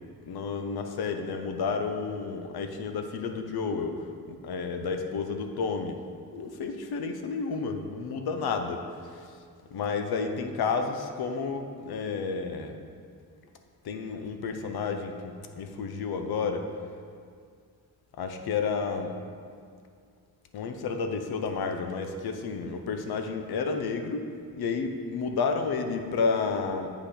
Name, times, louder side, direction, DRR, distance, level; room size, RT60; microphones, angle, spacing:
voice 1, 0.2-6.0 6.3-8.8 9.1-9.4 9.7-12.8 13.8-16.7 18.2-19.2 20.5-24.3 24.5-26.9, left 5 dB, 85° left, 6 dB, 0.7 m, -31 dB
8.1 x 5.6 x 4.2 m, 2.2 s
wide cardioid pair, 130°, 37 cm